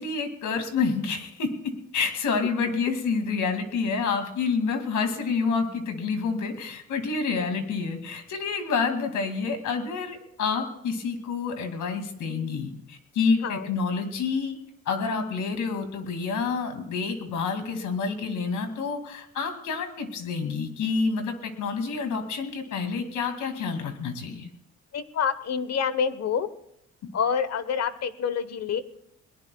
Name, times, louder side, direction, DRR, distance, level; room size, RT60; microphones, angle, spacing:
voice 1, 0.0-14.6 14.9-24.5, left 5 dB, 75° left, 6 dB, 2.4 m, -28 dB
voice 2, 24.9-26.5 27.1-28.8, left 7 dB, 60° left, 13 dB, 1.1 m, -27 dB
21.5 x 19.5 x 2.3 m, 0.75 s
cardioid pair, 90°, 30 cm